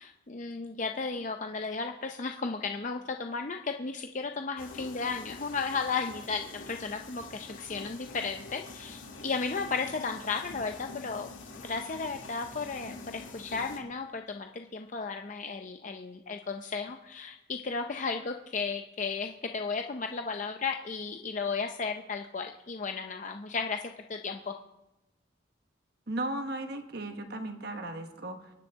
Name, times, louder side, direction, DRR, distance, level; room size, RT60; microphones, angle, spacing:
voice 1, 0.0-11.3 11.6-24.6, left 4 dB, 40° left, 5 dB, 0.6 m, -34 dB
sound 1, 4.6-13.8, left 3 dB, 85° left, 2.3 m, -46 dB
voice 2, 26.1-28.5, right 1 dB, 55° right, 5 dB, 1.3 m, -36 dB
23.5 x 10.5 x 3.6 m, 0.96 s
head